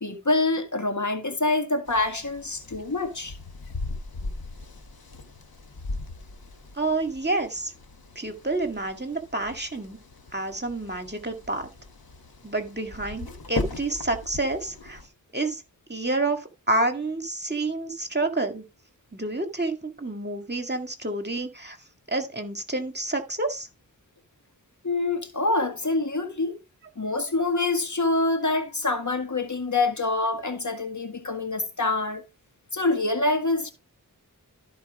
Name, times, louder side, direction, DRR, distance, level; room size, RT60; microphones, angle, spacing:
voice 1, 0.0-3.4 24.8-26.6 27.0-32.2 32.7-33.7, left 2 dB, 55° left, 1.8 m, -26 dB
sound 1, 1.9-15.1, left 3 dB, 85° left, 1.5 m, -38 dB
voice 2, 6.8-7.7 8.2-10.0 10.3-11.7 12.4-15.0 15.3-15.6 15.9-18.6 19.1-21.8 22.1-23.7, right 2 dB, 30° right, 2.1 m, -29 dB
13.5 x 4.4 x 5.0 m
wide cardioid pair, 45°, 35 cm